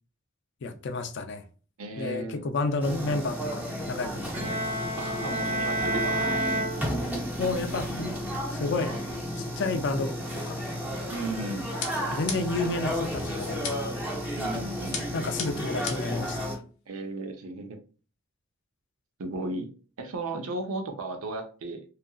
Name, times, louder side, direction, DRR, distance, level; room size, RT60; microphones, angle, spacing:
voice 1, 0.6-1.4 2.0-4.6 7.4-8.1 8.5-9.0 9.6-10.1 10.5-10.6 12.1-13.8 15.1-16.5, left 3 dB, 55° left, 0.3 m, -30 dB
voice 2, 1.8-2.5 5.0-6.7 11.1-11.7 14.4-15.0 16.9-17.8 19.2-19.7 20.0-21.8, right 2 dB, 75° right, 0.5 m, -35 dB
sound 1, 2.8-16.6, equal, 10° right, 0.5 m, -33 dB
Bowed string instrument, 4.3-7.5, right 1 dB, 35° right, 1.1 m, -30 dB
sound 2, 11.8-12.7 13.6-14.1 14.9-16.2, left 5 dB, 75° left, 0.7 m, -36 dB
2.8 x 2.4 x 2.3 m
head